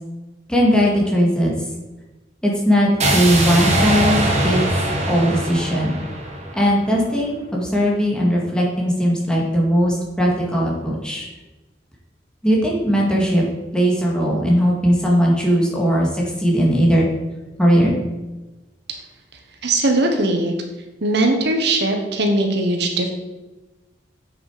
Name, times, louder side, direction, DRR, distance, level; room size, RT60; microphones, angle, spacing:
voice 1, 0.5-1.5 2.4-4.2 4.4-4.6 5.0-5.9 6.5-11.3 12.4-13.4 13.7-17.0 17.6-17.9, equal, 5° left, -3 dB, 2.1 m, -18 dB
sound 1, 3.0-7.0, right 1 dB, 40° right, 1.7 m, -21 dB
voice 2, 19.6-20.5 21.0-23.1, right 2 dB, 65° right, 4 dB, 1.2 m, -19 dB
8.3 x 6.7 x 5.0 m, 1.1 s
head